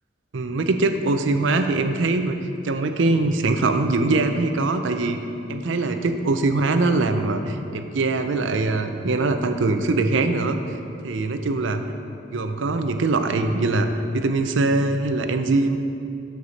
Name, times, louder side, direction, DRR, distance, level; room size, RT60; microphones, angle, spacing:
voice 1, 0.3-2.4 2.6-5.2 5.5-10.6 11.0-11.8 12.3-13.9 14.1-15.8, right 3 dB, 80° right, 7 dB, 0.5 m, -22 dB
8.0 x 6.7 x 4.1 m, 2.6 s
head